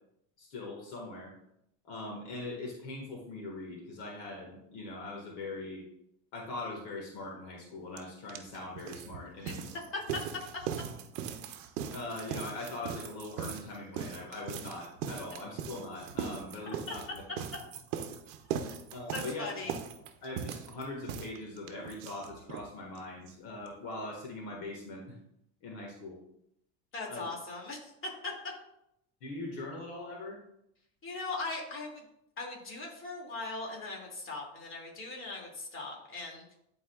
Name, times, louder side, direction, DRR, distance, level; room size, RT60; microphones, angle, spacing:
voice 1, 0.4-1.3 1.8-5.8 6.3-9.7 11.9-17.2 18.9-19.7 20.2-25.2 25.6-26.2 27.1-27.3 29.2-30.4, left 2 dB, 70° left, 0 dB, 1.8 m, -41 dB
sound 1, 8.0-8.1 8.3-22.7 23.0-23.1 23.3-23.4 23.7-23.8, right 8 dB, 90° right, 0.7 m, -39 dB
voice 2, 19.1-19.7 26.9-27.9 28.2-28.3 31.0-32.0 32.4-36.5, left 3 dB, 35° left, -1 dB, 2.4 m, -39 dB
11.0 x 4.0 x 2.4 m, 0.78 s
supercardioid pair, 100°, 36 cm